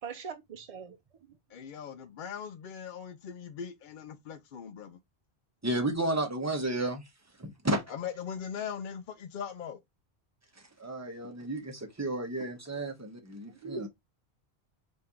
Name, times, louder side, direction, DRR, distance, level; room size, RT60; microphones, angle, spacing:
voice 1, 0.0-1.0 1.3-1.4 13.6-13.9, right 5 dB, 55° right, 0.4 m, -40 dB
voice 2, 1.5-5.0 7.9-9.8, left 7 dB, 60° left, 0.6 m, -40 dB
voice 3, 5.6-7.0 7.4-7.8 10.8-13.9, right 1 dB, 15° right, 0.9 m, -32 dB
4.4 x 2.7 x 3.6 m
omnidirectional pair, 1.1 m